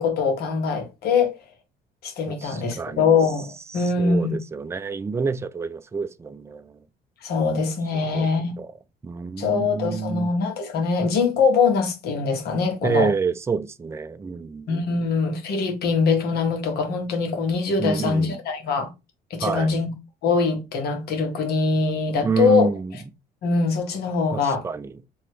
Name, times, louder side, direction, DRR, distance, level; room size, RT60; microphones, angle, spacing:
voice 1, 0.0-1.3 2.0-4.4 7.2-8.5 9.4-13.1 14.7-18.9 19.3-19.9 20.2-22.7 23.4-24.7, left 5 dB, 70° left, 1.4 m, -23 dB
voice 2, 2.3-3.2 3.7-6.8 7.9-8.3 8.6-8.7 9.0-10.3 12.8-14.7 17.8-18.4 19.4-19.8 22.2-22.9 24.3-25.0, right 5 dB, 15° right, 0.4 m, -28 dB
3.1 x 2.9 x 4.4 m
cardioid pair, 110°, 17 cm